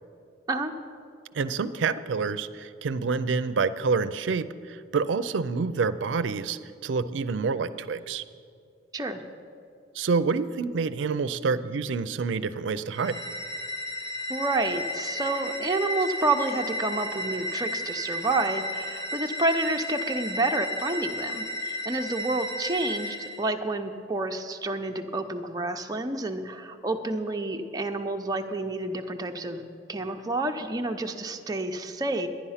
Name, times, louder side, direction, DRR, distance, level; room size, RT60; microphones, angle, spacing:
voice 1, 1.3-8.2 9.9-13.2, right 4 dB, 90° right, 12 dB, 0.4 m, -27 dB
sound 1, 12.9-23.5, left 1 dB, 20° left, 0.8 m, -33 dB
voice 2, 14.3-29.6 29.9-32.3, right 2 dB, 20° right, 4 dB, 0.6 m, -29 dB
11.0 x 10.5 x 5.7 m, 2.4 s
head